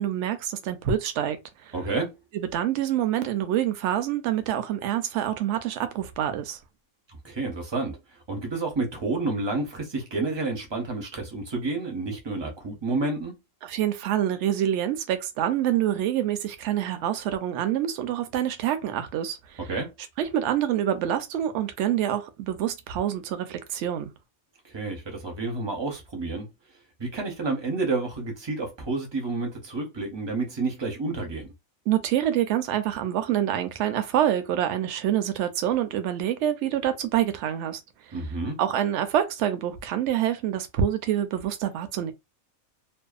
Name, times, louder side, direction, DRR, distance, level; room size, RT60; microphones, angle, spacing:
voice 1, 0.0-1.7 2.3-6.6 13.6-19.6 20.2-24.1 31.9-37.8 38.1-38.2 38.6-42.1, right 11 dB, 65° right, 0.8 m, -26 dB
voice 2, 1.7-2.1 7.1-13.4 19.7-19.9 24.6-26.5 27.0-31.5 38.1-38.6, right 3 dB, 30° right, 0.5 m, -30 dB
2.6 x 2.2 x 2.3 m
omnidirectional pair, 1.5 m